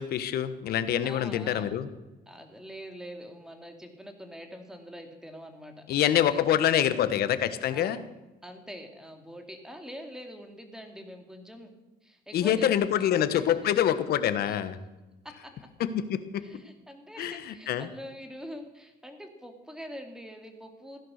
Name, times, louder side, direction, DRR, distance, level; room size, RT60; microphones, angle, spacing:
voice 1, 0.0-1.9 5.9-8.0 12.3-14.8 15.9-16.4 17.2-17.9, left 10 dB, 65° left, 12 dB, 1.3 m, -26 dB
voice 2, 1.0-1.7 2.3-7.0 7.7-8.0 8.4-11.7 12.0-13.7 14.5-14.6 15.4-15.6 16.4-21.0, equal, 5° right, 5 dB, 2.7 m, -44 dB
16.0 x 11.0 x 6.5 m, 1.1 s
cardioid pair, 110°, 17 cm